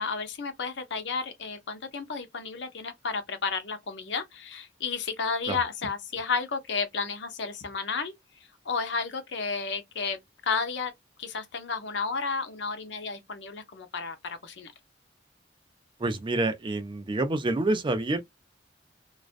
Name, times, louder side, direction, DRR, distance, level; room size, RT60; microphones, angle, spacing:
voice 1, 0.0-8.1 8.6-10.9 11.2-14.7, left 5 dB, 70° left, 0.6 m, -32 dB
voice 2, 16.0-18.2, right 2 dB, 25° right, 0.4 m, -27 dB
2.4 x 2.1 x 2.4 m
head